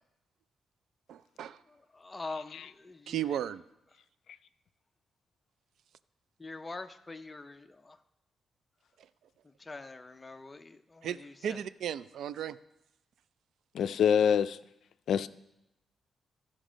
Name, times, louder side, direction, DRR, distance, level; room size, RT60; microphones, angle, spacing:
voice 1, 1.1-1.6 3.1-3.6 9.0-9.1 11.0-12.6, right 10 dB, 80° right, 0.3 m, -35 dB
voice 2, 1.9-3.2 6.4-8.0 9.4-11.6, left 3 dB, 15° left, 0.5 m, -44 dB
voice 3, 13.7-14.6 15.1-15.3, left 8 dB, 75° left, 0.3 m, -25 dB
14.5 x 5.3 x 5.0 m
wide cardioid pair, 165°, 0 cm